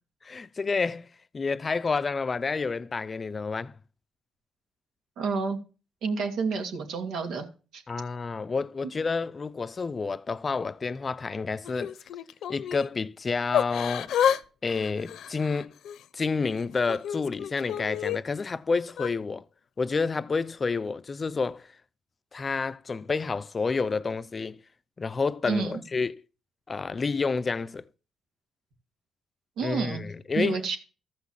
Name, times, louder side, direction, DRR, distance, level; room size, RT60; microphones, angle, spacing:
voice 1, 0.2-1.1 1.3-3.7 7.9-12.0 12.5-14.1 14.6-15.7 16.1-19.4 19.8-21.7 22.3-24.6 25.0-26.1 26.7-27.8 29.6-30.6, left 4 dB, 35° left, 0.6 m, -29 dB
voice 2, 5.2-5.6 6.0-7.5 7.7-7.8 25.4-25.8 29.6-30.0 30.4-30.8, right 4 dB, 80° right, 2.6 m, -29 dB
Yell / Crying sobbing, 11.6-12.9 13.5-14.4 14.7-16.0 16.6-18.2 18.9-19.1, left 9 dB, 75° left, 0.9 m, -30 dB
14.0 x 6.1 x 7.4 m
cardioid pair, 90°, 0 cm